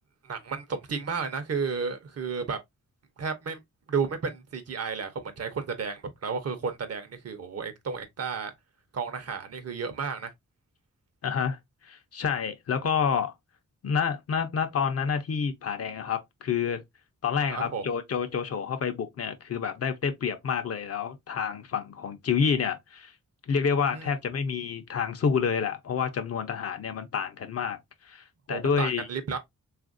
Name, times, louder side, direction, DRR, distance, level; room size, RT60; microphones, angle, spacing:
voice 1, 0.2-2.6 3.2-3.6 3.9-8.5 8.9-10.3 17.5-17.8 23.9-24.1 28.5-29.4, right 5 dB, 55° right, 0.7 m, -32 dB
voice 2, 11.2-11.6 11.8-13.3 13.8-16.8 17.2-23.1 23.5-27.8 28.1-29.1, left 6 dB, 55° left, 0.6 m, -28 dB
3.4 x 2.5 x 2.4 m
wide cardioid pair, 110°, 30 cm